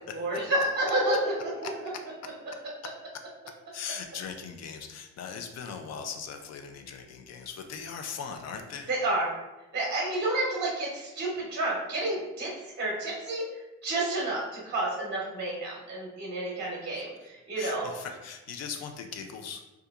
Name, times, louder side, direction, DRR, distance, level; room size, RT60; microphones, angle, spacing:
voice 1, 0.1-1.7 8.9-9.3 9.7-12.5 12.8-13.4 13.8-17.9, right 2 dB, 35° right, -4 dB, 0.8 m, -30 dB
voice 2, 3.7-8.9 17.6-19.6, left 6 dB, 60° left, 5 dB, 0.4 m, -39 dB
2.7 x 2.3 x 2.3 m, 1.0 s
cardioid pair, 90°, 30 cm